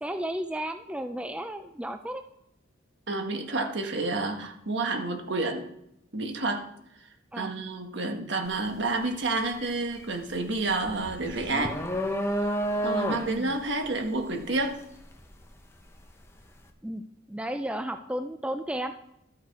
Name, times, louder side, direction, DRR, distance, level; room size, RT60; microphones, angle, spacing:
voice 1, 0.0-2.2 7.3-7.5 13.3-13.5 16.8-17.0 17.3-19.1, right 1 dB, 5° right, 8 dB, 0.4 m, -33 dB
voice 2, 3.1-5.7 6.1-6.6 7.4-11.8 12.8-14.8, right 2 dB, 60° right, 5 dB, 1.4 m, -29 dB
sound 1, 8.5-8.7 9.1-16.1, equal, 15° left, 1.0 m, -31 dB
12.5 x 6.6 x 4.8 m, 0.80 s
head